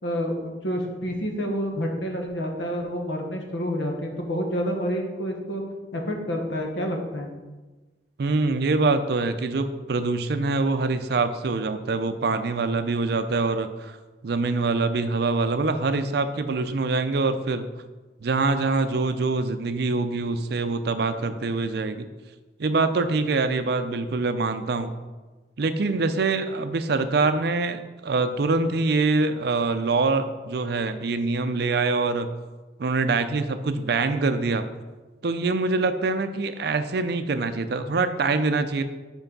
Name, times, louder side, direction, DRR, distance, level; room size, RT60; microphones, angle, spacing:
voice 1, 0.0-5.6 5.9-7.3, equal, 80° left, 2 dB, 1.1 m, -28 dB
voice 2, 8.2-14.0 14.2-17.6 18.2-22.1 22.6-24.9 25.6-32.3 32.8-34.6 35.2-38.8, right 3 dB, 60° right, 10 dB, 0.5 m, -24 dB
5.7 x 4.6 x 5.3 m, 1.2 s
head